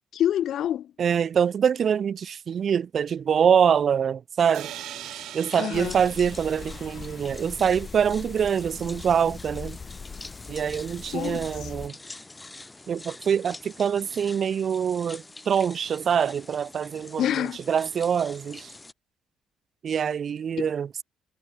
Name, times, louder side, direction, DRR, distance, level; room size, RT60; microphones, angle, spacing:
voice 1, 0.1-0.9 5.6-6.0 11.1-11.7 17.2-17.6 20.6-20.7, left 11 dB, 60° left, 0.8 m, -27 dB
voice 2, 1.0-4.7 5.3-9.8 10.5-11.9 12.9-17.2 17.7-18.7 19.8-21.0, right 7 dB, 45° right, 0.4 m, -24 dB
sound 1, 4.4-18.9, left 2 dB, 10° left, 2.1 m, -46 dB
sound 2, 4.5-8.3, right 14 dB, 80° right, 6.2 m, -42 dB
sound 3, 5.7-11.9, left 5 dB, 25° left, 2.4 m, -41 dB
cardioid pair, 145°, 0 cm